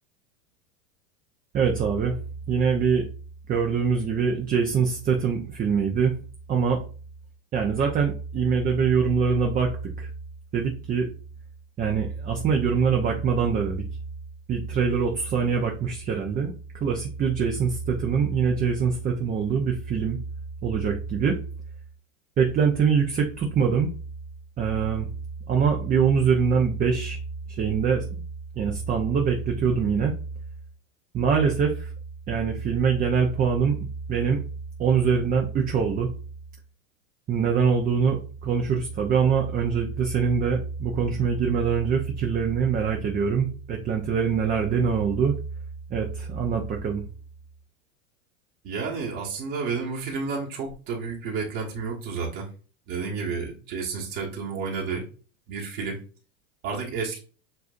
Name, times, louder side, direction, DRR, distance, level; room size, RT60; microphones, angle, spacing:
voice 1, 1.5-2.2 2.5-3.1 3.5-6.1 6.5-6.8 7.5-9.7 10.0-10.1 10.5-11.1 11.8-13.8 14.5-16.5 16.8-20.2 20.6-21.4 22.4-23.9 24.6-25.1 25.5-27.2 27.5-28.2 28.6-30.1 31.1-31.9 32.3-34.4 34.8-36.1 37.3-45.3 45.9-47.0, right 6 dB, 20° right, 2 dB, 0.6 m, -24 dB
voice 2, 48.6-52.5 52.9-55.0 55.5-56.0 56.6-57.2, right 5 dB, 50° right, -2 dB, 1.6 m, -31 dB
7.7 x 2.6 x 2.5 m, 0.38 s
hypercardioid pair, 105°, 40 cm